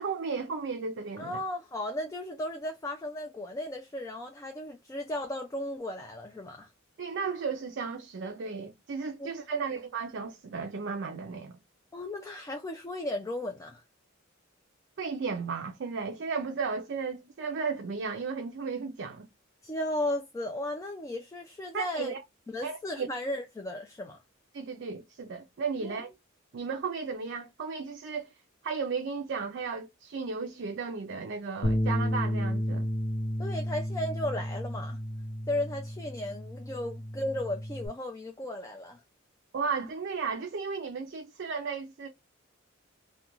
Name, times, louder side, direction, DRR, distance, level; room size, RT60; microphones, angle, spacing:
voice 1, 0.0-1.4 7.0-11.6 15.0-19.3 21.7-22.2 22.6-23.1 24.5-26.1 26.5-28.3 28.6-32.9 39.5-42.1, right 5 dB, 60° right, 0.4 m, -34 dB
voice 2, 1.2-6.7 9.2-9.6 11.9-13.8 19.6-22.1 22.5-24.2 25.8-26.0 33.4-35.0 35.5-39.0, left 1 dB, 15° left, 0.3 m, -35 dB
Bass guitar, 31.6-37.9, equal, 60° left, 0.7 m, -32 dB
2.4 x 2.2 x 2.9 m
head